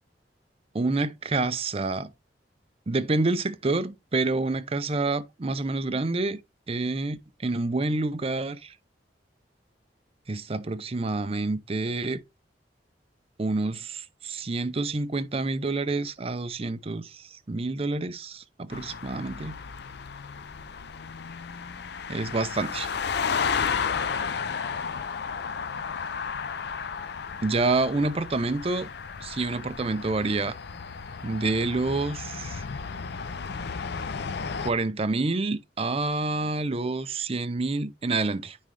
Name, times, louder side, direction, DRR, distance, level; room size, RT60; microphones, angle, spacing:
voice 1, 0.7-2.1 2.9-6.4 6.7-8.7 10.3-12.2 13.4-19.6 22.1-22.9 27.4-28.9 29.2-30.6 31.2-32.6 34.6-38.6, right 3 dB, 35° right, 0.6 m, -28 dB
sound 1, 18.7-34.7, left 6 dB, 65° left, 0.5 m, -33 dB
9.5 x 3.7 x 3.3 m
head